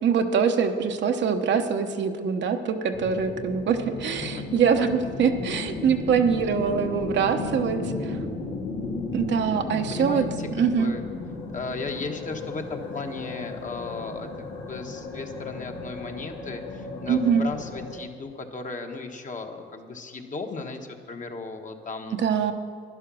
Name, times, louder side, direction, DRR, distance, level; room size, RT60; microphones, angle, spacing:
voice 1, 0.0-8.2 9.1-10.2 10.5-10.9 17.1-17.5 22.2-22.5, right 6 dB, 65° right, 6 dB, 1.0 m, -24 dB
sound 1, 2.9-17.9, left 3 dB, 90° left, 2.3 m, -34 dB
voice 2, 9.9-11.0 11.5-14.3 14.7-22.2, left 4 dB, 40° left, 4 dB, 1.4 m, -36 dB
11.5 x 11.0 x 6.2 m, 2.1 s
cardioid pair, 90°, 20 cm